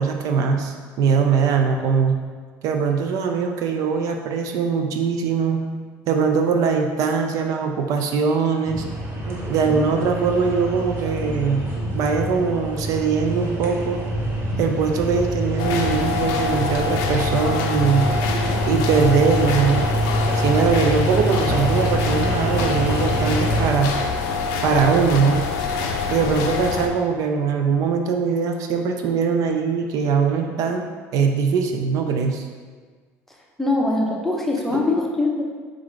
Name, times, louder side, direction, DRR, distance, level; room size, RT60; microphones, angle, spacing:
voice 1, 0.0-2.2 2.6-5.7 6.1-8.9 9.5-11.7 11.9-14.0 14.6-18.1 18.7-19.9 20.4-23.9 24.6-25.5 26.1-32.5 34.7-34.9, right 5 dB, 65° right, 4 dB, 0.4 m, -21 dB
sound 1, 8.6-23.7, right 1 dB, 35° right, 0.9 m, -26 dB
sound 2, 15.6-26.9, left 4 dB, 80° left, 0.4 m, -25 dB
voice 2, 33.6-35.4, left 2 dB, 5° left, -1 dB, 0.6 m, -22 dB
4.7 x 2.5 x 3.1 m, 1.5 s
cardioid pair, 110°, 6 cm